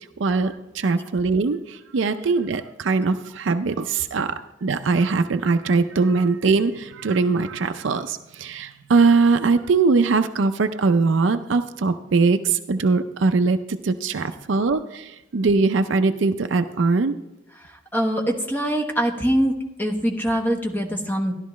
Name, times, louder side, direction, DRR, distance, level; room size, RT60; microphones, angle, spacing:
voice 1, 0.2-4.3 4.6-17.2, right 4 dB, 75° right, 8 dB, 0.5 m, -21 dB
voice 2, 17.6-21.3, equal, 10° left, 2 dB, 1.1 m, -24 dB
13.0 x 11.5 x 3.1 m, 0.97 s
head